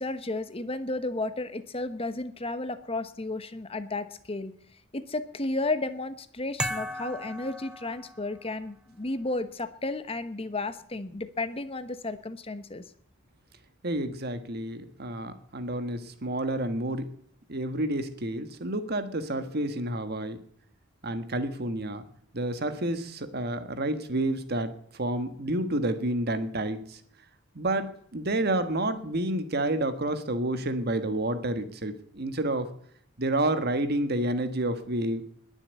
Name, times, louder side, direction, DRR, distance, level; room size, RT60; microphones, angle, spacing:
voice 1, 0.0-4.5 4.9-12.8, left 2 dB, 30° left, 11 dB, 1.0 m, -33 dB
sound 1, 6.6-8.5, equal, 5° right, 0.7 m, -35 dB
voice 2, 13.8-17.0 17.5-20.4 21.0-22.0 22.3-27.0 27.5-32.7 33.2-35.2, right 1 dB, 50° right, 10 dB, 1.5 m, -29 dB
20.5 x 7.2 x 8.3 m, 0.66 s
head